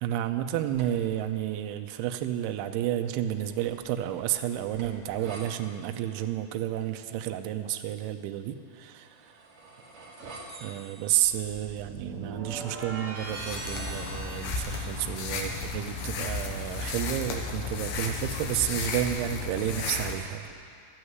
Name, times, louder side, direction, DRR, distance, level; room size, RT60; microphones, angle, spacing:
voice 1, 0.0-9.2 10.6-20.5, right 12 dB, 85° right, 7 dB, 2.4 m, -31 dB
sound 1, 0.7-1.2 3.0-5.4 8.9-15.3, right 3 dB, 50° right, 2.2 m, -43 dB
sound 2, 13.2-20.1, left 4 dB, 75° left, 2.8 m, -34 dB
12.5 x 8.7 x 8.1 m, 2.5 s
omnidirectional pair, 5.0 m